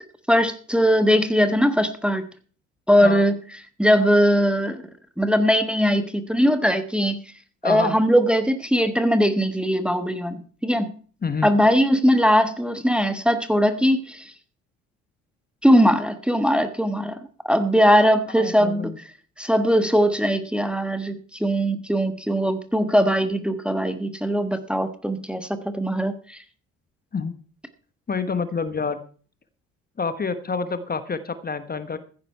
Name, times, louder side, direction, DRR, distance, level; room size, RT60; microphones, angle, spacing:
voice 1, 0.3-2.2 2.9-3.3 3.8-4.8 5.2-7.2 7.6-11.0 11.4-14.3 15.6-17.2 17.4-19.0 19.4-26.4, equal, 5° right, 10 dB, 1.2 m, -20 dB
voice 2, 7.6-8.0 11.2-11.5 18.4-19.0 27.1-27.4 28.1-29.0 30.0-32.0, left 5 dB, 25° left, 12 dB, 1.2 m, -28 dB
15.0 x 10.0 x 4.6 m, 0.41 s
figure-of-eight pair, 50°, 39 cm